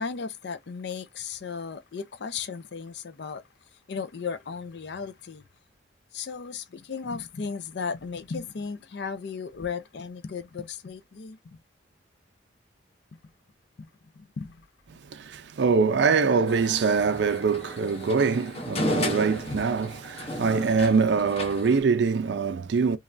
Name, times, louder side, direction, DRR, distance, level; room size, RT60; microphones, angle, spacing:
voice 1, 0.0-3.4 3.9-5.4 6.1-11.6 13.1-13.2 13.8-13.9 14.2-14.7, left 5 dB, 60° left, 0.5 m, -35 dB
voice 2, 15.1-23.0, right 5 dB, 65° right, 0.4 m, -24 dB
sound 1, 16.5-21.8, left 1 dB, 30° left, 0.7 m, -34 dB
3.1 x 2.3 x 2.4 m
head